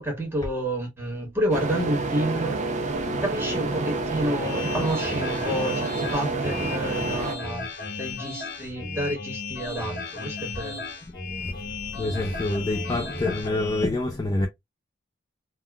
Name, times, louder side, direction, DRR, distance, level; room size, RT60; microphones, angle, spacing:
voice 1, 0.0-10.8, right 1 dB, 10° right, 1.3 m, -30 dB
sound 1, 1.5-7.4, right 2 dB, 40° right, 0.5 m, -28 dB
sound 2, 4.4-13.9, left 3 dB, 55° left, 0.9 m, -35 dB
voice 2, 11.1-11.6 11.9-14.5, left 2 dB, 20° left, 0.3 m, -27 dB
3.5 x 2.2 x 2.2 m
head